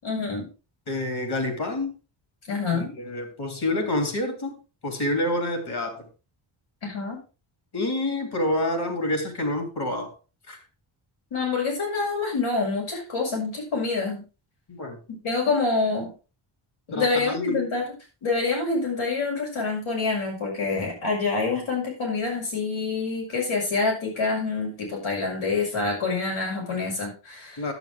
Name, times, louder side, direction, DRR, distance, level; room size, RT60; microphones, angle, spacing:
voice 1, 0.0-0.4 2.5-2.9 6.8-7.2 11.3-14.2 15.1-16.1 16.9-17.8 18.2-27.6, left 4 dB, 80° left, -1 dB, 6.3 m, -26 dB
voice 2, 0.9-1.9 2.7-4.5 4.8-6.1 7.7-10.1 10.5-10.6 14.7-15.0 16.9-17.7 27.6-27.7, left 1 dB, 50° left, 5 dB, 3.3 m, -28 dB
10.5 x 8.7 x 3.7 m, 0.32 s
wide cardioid pair, 140°, 48 cm